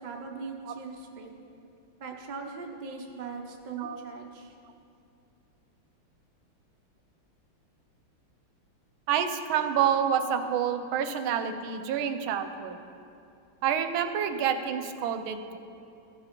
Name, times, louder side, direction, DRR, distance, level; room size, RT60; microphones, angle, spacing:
voice 1, 0.0-1.3 2.0-4.5, right 4 dB, 70° right, 2 dB, 0.4 m, -40 dB
voice 2, 9.1-12.8 13.6-15.6, right 8 dB, 85° right, 8 dB, 1.5 m, -28 dB
14.5 x 5.2 x 5.2 m, 2.6 s
omnidirectional pair, 2.2 m